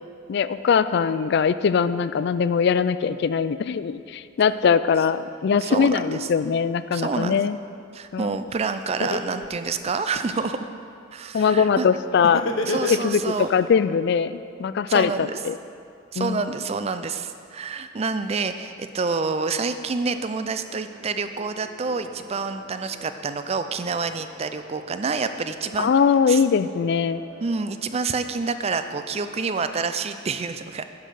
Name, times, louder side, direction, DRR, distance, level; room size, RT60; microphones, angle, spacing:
voice 1, 0.3-7.6 8.1-8.3 11.3-15.6 16.2-16.5 25.8-27.2, left 6 dB, 55° left, 14 dB, 0.3 m, -21 dB
voice 2, 5.6-6.3 6.9-7.4 7.9-10.7 11.1-11.9 12.7-13.5 14.9-15.4 16.1-25.9 26.3-26.4 27.4-30.9, right 4 dB, 30° right, 10 dB, 0.4 m, -28 dB
Laughter, 8.5-8.6 9.0-10.5 12.2-13.4, left 3 dB, 80° left, 0.7 m, -27 dB
sound 1, 20.1-30.0, left 1 dB, 85° right, 2.1 m, -49 dB
10.5 x 5.8 x 6.5 m, 2.4 s
head